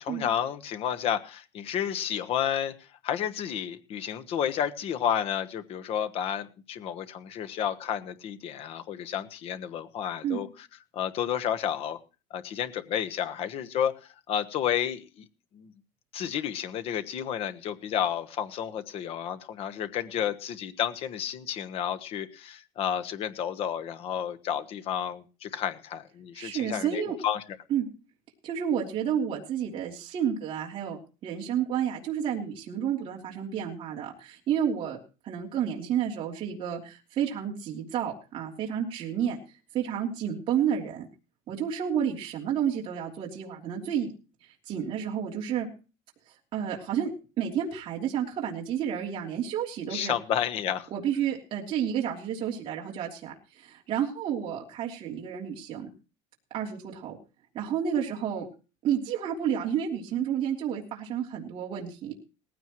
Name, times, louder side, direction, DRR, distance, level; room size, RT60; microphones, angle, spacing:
voice 1, 0.0-10.7 10.9-12.0 12.3-15.3 15.5-15.7 16.1-27.4 49.9-50.9, left 9 dB, 40° left, 9 dB, 1.2 m, -31 dB
voice 2, 26.3-27.2 27.7-27.9 28.4-35.0 35.2-39.4 39.7-41.1 41.5-44.1 44.4-45.7 46.5-47.1 47.4-50.1 50.9-55.9 56.5-57.2 57.5-58.5 58.8-62.1, right 9 dB, 35° right, -2 dB, 3.2 m, -30 dB
18.5 x 15.5 x 3.1 m, 0.34 s
cardioid pair, 170°, 16 cm